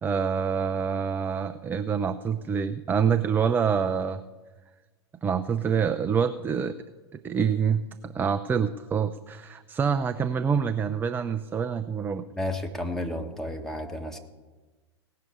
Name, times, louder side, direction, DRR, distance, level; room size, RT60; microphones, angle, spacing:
voice 1, 0.0-4.2 5.2-6.8 7.1-12.3, right 6 dB, 15° right, 9 dB, 0.4 m, -26 dB
voice 2, 12.3-14.2, left 1 dB, 5° left, 3 dB, 1.4 m, -32 dB
17.0 x 6.6 x 8.5 m, 1.3 s
figure-of-eight pair, 95°, 15 cm